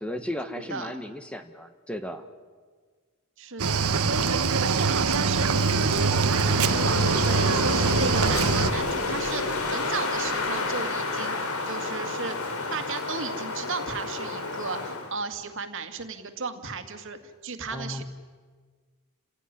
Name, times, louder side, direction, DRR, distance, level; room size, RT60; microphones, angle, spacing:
voice 1, 0.0-2.2 17.7-18.0, left 1 dB, 5° left, 8 dB, 1.3 m, -35 dB
voice 2, 3.4-11.4 11.7-12.4 12.7-18.0, right 4 dB, 60° right, 8 dB, 2.2 m, -35 dB
Cricket / Waves surf, 3.6-8.7, right 5 dB, 85° right, 1.3 m, -23 dB
Wind, 5.3-15.1, left 3 dB, 80° left, 3.3 m, -30 dB
sound 1, 6.7-11.0, equal, 40° left, 5.1 m, -44 dB
29.5 x 16.5 x 10.0 m, 1.5 s
head